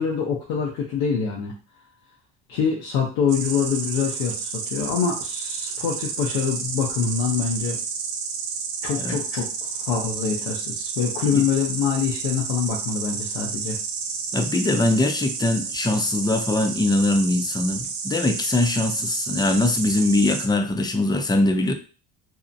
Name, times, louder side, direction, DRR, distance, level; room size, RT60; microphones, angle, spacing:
voice 1, 0.0-1.5 2.5-7.8 8.8-13.8, left 6 dB, 85° left, -2 dB, 0.7 m, -25 dB
Insect, 3.3-20.5, right 5 dB, 80° right, 0.6 m, -31 dB
voice 2, 14.3-21.7, left 2 dB, 10° left, 5 dB, 0.4 m, -22 dB
2.7 x 2.1 x 2.6 m, 0.36 s
supercardioid pair, 75°, 41 cm